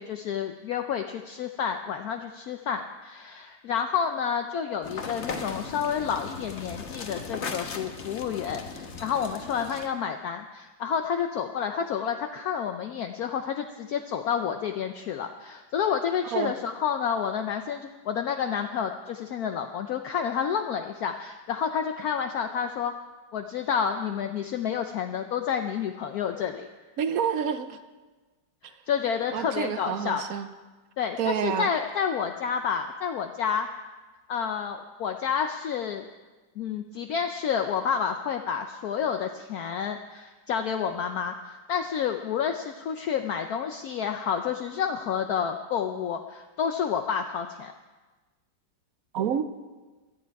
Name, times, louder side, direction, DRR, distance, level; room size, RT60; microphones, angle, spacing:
voice 1, 0.0-22.9 23.3-26.7 28.9-30.2 31.0-33.7 34.3-36.1 36.6-47.7, left 7 dB, 65° left, 5 dB, 1.0 m, -29 dB
sound 1, 4.8-9.9, left 4 dB, 45° left, 1.2 m, -37 dB
voice 2, 27.0-27.8 29.3-30.5 31.2-31.7 49.1-49.4, right 8 dB, 60° right, 11 dB, 1.0 m, -28 dB
17.0 x 11.5 x 4.7 m, 1.3 s
omnidirectional pair, 1.9 m